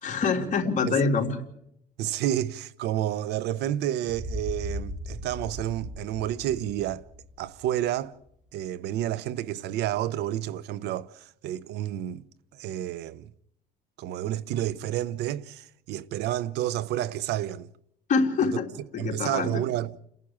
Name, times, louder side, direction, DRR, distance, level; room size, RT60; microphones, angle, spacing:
voice 1, 0.0-1.3 18.1-18.7 18.9-19.6, left 4 dB, 45° left, 3.3 m, -25 dB
voice 2, 2.0-7.1 7.4-8.1 8.5-12.2 12.5-13.3 14.0-17.7 18.4-18.6 19.0-19.9, right 12 dB, 85° right, 0.8 m, -30 dB
sound 1, 4.1-7.9, equal, 5° right, 1.5 m, -38 dB
30.0 x 11.0 x 8.8 m
cardioid pair, 110°, 17 cm